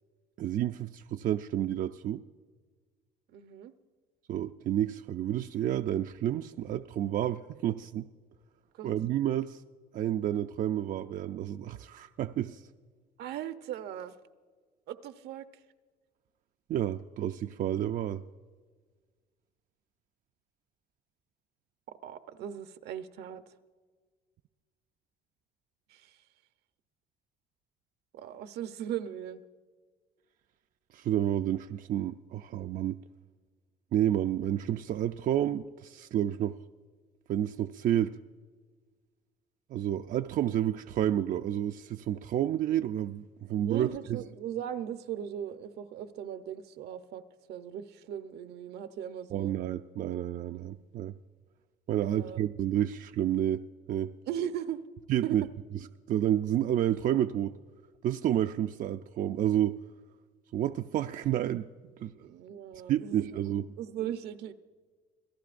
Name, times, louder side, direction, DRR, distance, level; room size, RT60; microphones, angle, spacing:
voice 1, 0.4-2.2 4.3-8.0 8.8-9.6 9.9-12.6 16.7-18.2 30.9-33.0 33.9-36.6 37.3-38.2 39.7-43.9 49.3-51.1 51.9-53.6 53.9-54.1 55.1-55.4 56.1-57.5 58.0-59.8 60.5-61.7 62.0-62.3 62.9-63.7, right 11 dB, 55° right, 8 dB, 0.4 m, -30 dB
voice 2, 3.3-3.7 8.7-8.9 13.2-14.2 14.9-15.6 21.9-23.4 25.9-26.2 28.1-29.4 43.6-47.2 47.5-49.6 52.0-52.4 54.3-54.8 55.2-55.4 62.2-63.4 63.8-64.5, right 10 dB, 75° right, 10 dB, 0.8 m, -38 dB
26.5 x 17.5 x 2.5 m, 1.5 s
cardioid pair, 110°, 17 cm